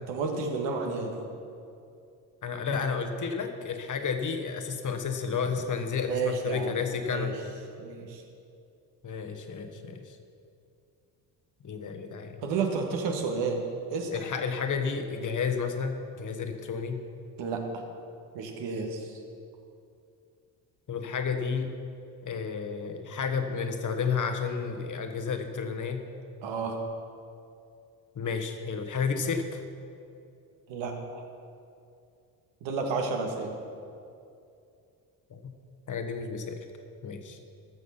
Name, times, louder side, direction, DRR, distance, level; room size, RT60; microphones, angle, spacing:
voice 1, 0.1-1.2 6.1-6.8 7.1-7.3 7.8-8.2 12.4-13.6 13.9-14.1 17.4-17.8 18.3-19.2 26.4-26.8 30.7-31.2 32.6-33.6, right 4 dB, 75° right, 3 dB, 1.6 m, -31 dB
voice 2, 2.4-7.4 9.0-10.2 11.6-12.5 14.1-17.0 20.9-21.7 22.2-26.0 28.1-29.6 35.3-35.5 35.9-36.6 37.0-37.4, left 5 dB, 45° left, 6 dB, 1.3 m, -31 dB
13.5 x 6.4 x 5.7 m, 2.5 s
supercardioid pair, 60°, 44 cm